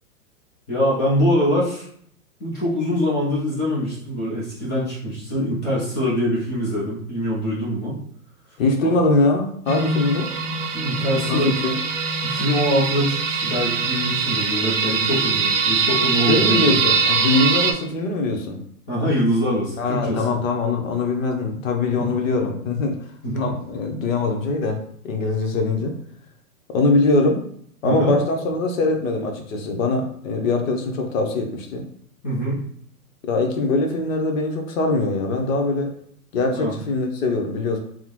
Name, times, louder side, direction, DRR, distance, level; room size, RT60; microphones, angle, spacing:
voice 1, 0.7-1.9 2.4-8.0 10.7-11.6 12.2-16.8 18.9-20.2 22.0-22.1 23.2-23.4 27.8-28.1 32.2-32.6 36.5-36.7, equal, 15° left, -7 dB, 0.3 m, -23 dB
voice 2, 8.6-10.3 11.3-11.8 16.3-18.6 19.8-23.0 23.4-24.8 25.0-25.9 26.7-27.4 27.8-31.8 33.2-35.9 36.3-37.8, left 3 dB, 60° left, 3 dB, 0.9 m, -22 dB
sound 1, 9.7-17.7, right 5 dB, 55° right, 0.7 m, -22 dB
3.4 x 2.1 x 3.0 m, 0.65 s
hypercardioid pair, 130°, 45 cm